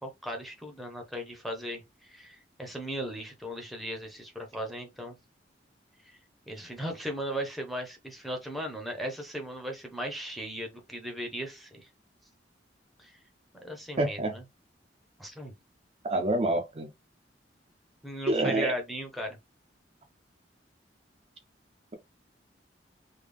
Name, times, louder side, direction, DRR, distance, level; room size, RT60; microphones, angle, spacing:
voice 1, 0.0-5.1 6.1-6.2 6.5-11.9 13.0-13.1 13.6-14.4 15.2-15.5 18.0-19.4, right 1 dB, ahead, 0.8 m, -37 dB
voice 2, 14.0-14.3 16.0-16.9 18.3-18.7, right 1 dB, 35° right, 0.5 m, -27 dB
3.5 x 2.3 x 3.4 m
head